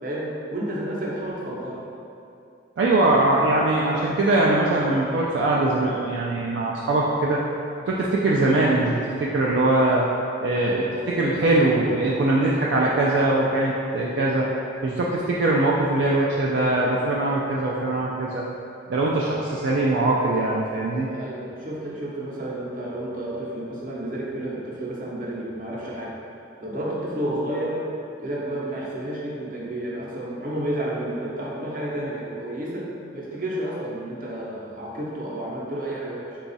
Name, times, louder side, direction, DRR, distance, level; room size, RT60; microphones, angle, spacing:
voice 1, 0.0-1.8 3.4-3.6 10.5-11.1 21.1-26.1 26.6-27.8 28.2-36.4, right 1 dB, 50° right, -5 dB, 0.7 m, -31 dB
voice 2, 2.8-7.4 7.9-10.1 10.4-14.5 14.8-18.4 18.9-21.1, right 2 dB, 70° right, -4 dB, 0.3 m, -22 dB
3.9 x 2.3 x 3.9 m, 2.6 s
head